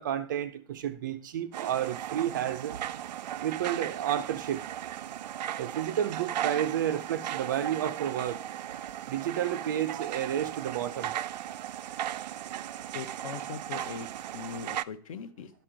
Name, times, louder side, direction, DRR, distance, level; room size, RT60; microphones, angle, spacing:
voice 1, 0.0-2.7 3.4-4.6 5.6-8.4 9.1-11.1, right 10 dB, 30° right, 0.4 m, -31 dB
sound 1, 1.5-14.8, right 11 dB, 85° right, 0.5 m, -37 dB
voice 2, 12.9-14.1 14.3-15.5, left 6 dB, 55° left, 0.8 m, -40 dB
12.0 x 4.4 x 5.0 m
supercardioid pair, 180°, 21 cm